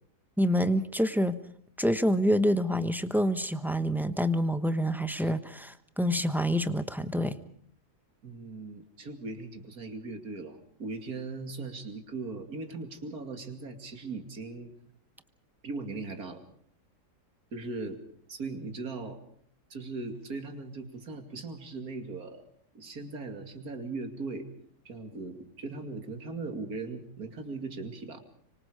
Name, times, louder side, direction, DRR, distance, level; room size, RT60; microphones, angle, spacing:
voice 1, 0.4-1.4 1.8-7.4, equal, ahead, 10 dB, 0.8 m, -27 dB
voice 2, 8.2-14.7 15.6-16.4 17.5-18.0 18.3-19.2 19.7-22.4 22.7-24.5 24.8-28.2, right 3 dB, 65° right, 5 dB, 3.0 m, -39 dB
25.0 x 25.0 x 5.1 m, 0.62 s
omnidirectional pair, 1.7 m